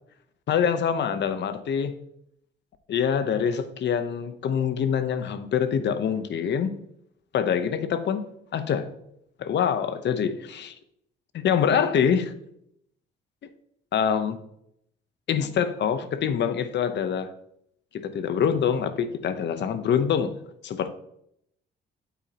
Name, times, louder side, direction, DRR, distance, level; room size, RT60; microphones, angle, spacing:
voice 1, 0.5-1.9 2.9-6.7 7.3-8.9 9.4-10.7 11.3-12.3 13.9-14.4 15.3-17.3 18.0-20.4 20.6-20.9, left 7 dB, 60° left, 0.9 m, -25 dB
9.3 x 8.0 x 2.9 m
cardioid pair, 90°, 20 cm